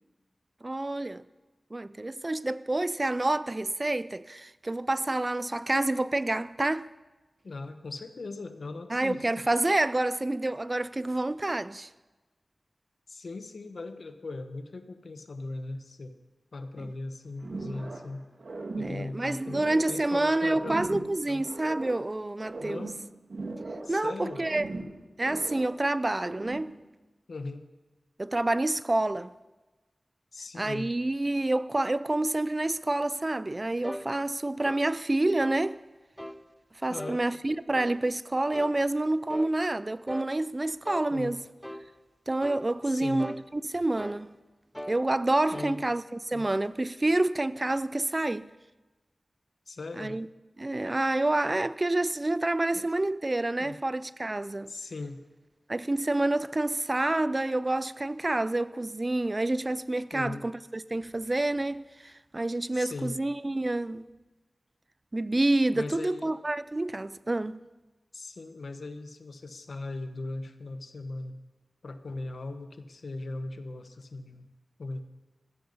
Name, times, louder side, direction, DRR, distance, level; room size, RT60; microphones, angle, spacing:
voice 1, 0.6-1.2 1.7-6.9 8.9-11.9 16.8-16.9 18.8-22.9 23.9-24.7 25.2-26.8 28.2-29.3 30.5-35.8 36.8-41.4 42.3-44.3 44.9-48.5 50.0-50.3 50.6-54.7 55.7-64.1 65.1-67.6, right 2 dB, 35° right, 0.4 m, -28 dB
voice 2, 7.4-9.4 13.1-16.1 16.5-18.3 18.7-21.0 21.3-21.4 22.6-23.0 23.8-24.4 27.3-27.6 30.3-30.9 36.9-37.2 41.1-41.4 42.9-43.3 45.5-45.9 46.3-46.5 49.7-50.2 52.7-52.9 53.6-53.8 54.7-55.2 60.1-60.5 62.7-63.2 65.7-66.3 68.1-71.4 71.8-74.5 74.8-75.0, left 2 dB, 80° left, 1.1 m, -39 dB
sound 1, 17.4-18.1 18.4-20.1 20.4-22.1 22.4-24.0 24.2-25.8 26.1-26.8, right 3 dB, 75° right, 1.9 m, -39 dB
sound 2, 33.8-34.1 34.6-34.9 35.4-35.6 36.2-36.4 37.0-37.2 37.7-38.0 38.5-38.8 39.3-39.5 40.1-40.3 40.8-41.1 41.6-41.9 42.4-42.7 43.2-43.4 44.0-44.2 44.7-45.0 45.5-45.7, equal, 5° left, 0.8 m, -39 dB
15.0 x 14.5 x 5.4 m
wide cardioid pair, 65°, 0 cm